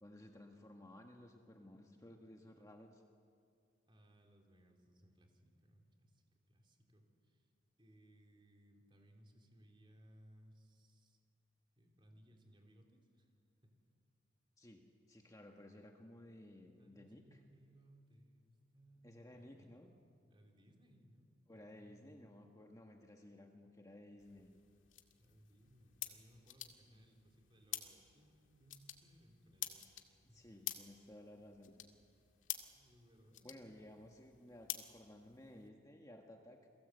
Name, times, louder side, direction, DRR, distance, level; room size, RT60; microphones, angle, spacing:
voice 1, 0.0-3.0 14.6-17.4 19.0-19.9 21.5-24.5 30.3-31.8 33.4-36.7, left 1 dB, 20° left, 2 dB, 1.6 m, -57 dB
voice 2, 3.9-7.5 7.8-11.2 11.8-13.3 13.6-13.8 16.8-19.8 20.3-22.4 25.2-29.9 30.3-30.5 32.7-33.9, equal, 25° right, 2 dB, 3.6 m, -65 dB
sound 1, 24.2-35.7, left 12 dB, 80° left, 2.0 m, -50 dB
30.0 x 22.0 x 8.2 m, 2.2 s
head